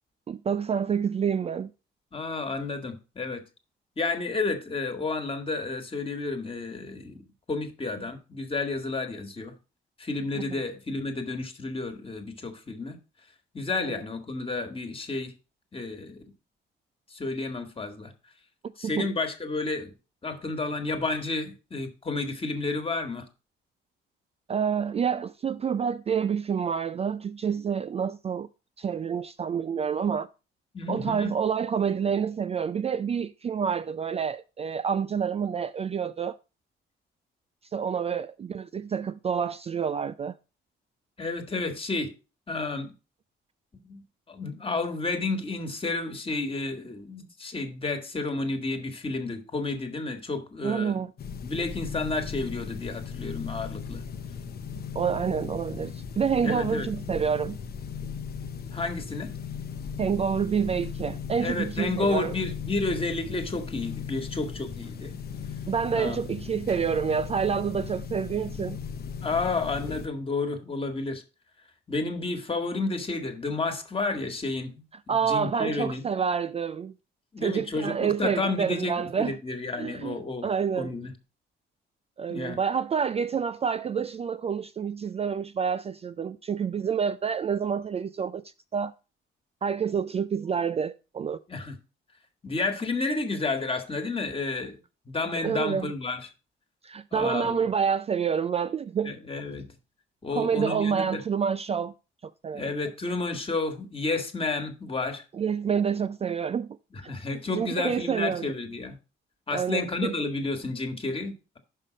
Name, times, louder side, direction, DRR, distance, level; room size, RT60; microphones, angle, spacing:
voice 1, 0.3-1.7 10.3-10.4 13.8-14.0 18.8-19.1 24.5-28.5 28.8-30.3 30.9-36.4 37.7-40.3 50.6-51.1 54.9-57.6 60.0-62.4 65.7-68.8 75.1-76.9 77.4-79.3 79.8-80.9 82.2-88.4 88.7-88.9 89.6-91.4 95.4-95.9 96.8-99.1 100.3-101.9 102.2-102.7 105.4-106.8 107.0-107.1 107.5-108.5 109.5-110.2, right 7 dB, 30° right, 0.3 m, -28 dB
voice 2, 2.1-3.4 4.0-7.2 7.5-9.5 10.0-13.0 13.5-15.3 15.7-16.2 17.1-18.1 18.8-19.9 20.2-23.3 30.7-31.3 41.2-42.1 42.5-42.9 43.9-44.0 44.3-51.1 51.4-54.0 56.4-56.9 58.7-59.3 61.4-65.1 65.9-66.2 69.2-71.2 71.9-76.0 77.3-80.5 80.8-81.1 82.3-82.6 91.5-91.8 92.4-94.8 95.0-96.3 97.1-97.6 99.0-99.7 100.2-101.2 102.5-105.2 106.9-109.0 109.5-111.6, left 3 dB, 25° left, 1.5 m, -31 dB
sound 1, 51.2-70.1, left 6 dB, 50° left, 0.8 m, -37 dB
5.6 x 5.4 x 5.0 m
cardioid pair, 90°, 20 cm